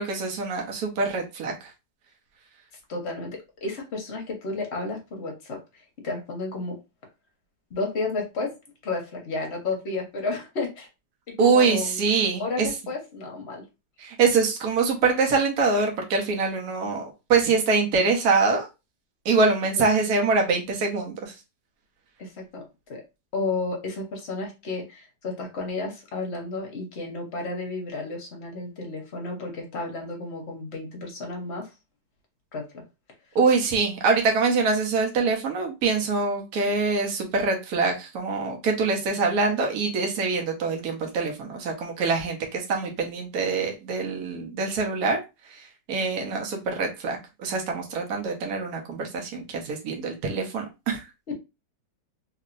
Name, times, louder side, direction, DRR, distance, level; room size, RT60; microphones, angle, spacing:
voice 1, 0.0-1.7 11.4-12.7 14.0-18.7 19.2-21.3 33.3-45.2 45.5-51.0, right 4 dB, 65° right, 1 dB, 1.2 m, -24 dB
voice 2, 2.9-6.8 7.7-8.6 8.8-10.9 11.3-12.0 12.4-13.6 22.2-23.0 23.3-31.7 32.5-32.8, left 3 dB, 50° left, 1 dB, 0.9 m, -32 dB
3.0 x 2.7 x 2.5 m, 0.25 s
omnidirectional pair, 1.9 m